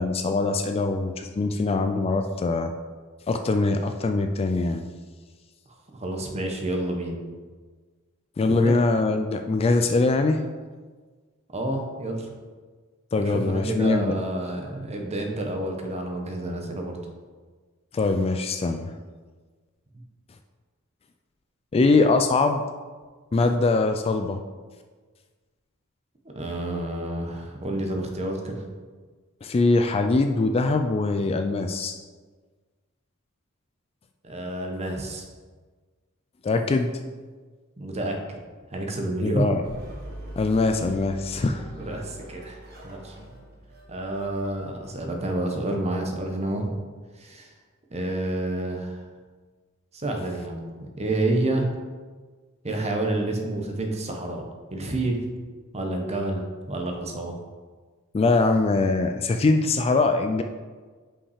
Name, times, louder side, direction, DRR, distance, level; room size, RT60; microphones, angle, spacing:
voice 1, 0.0-2.7 3.3-4.8 8.4-10.4 13.1-14.1 17.9-18.8 21.7-22.6 23.3-24.4 29.4-31.9 36.4-36.9 39.2-39.6 40.4-41.6 58.1-60.4, left 3 dB, 25° left, 6 dB, 0.3 m, -22 dB
voice 2, 5.9-7.2 8.6-8.7 11.5-12.3 13.2-17.0 26.3-28.6 34.2-35.2 37.8-38.4 38.7-39.5 41.7-43.1 43.9-46.8 47.2-47.5 47.9-49.0 49.9-51.7 52.6-54.4 54.7-55.2 55.7-57.3, right 1 dB, 30° right, 3 dB, 1.0 m, -29 dB
sound 1, 39.6-45.1, right 1 dB, 45° right, 1.5 m, -42 dB
5.6 x 5.5 x 4.9 m, 1.4 s
head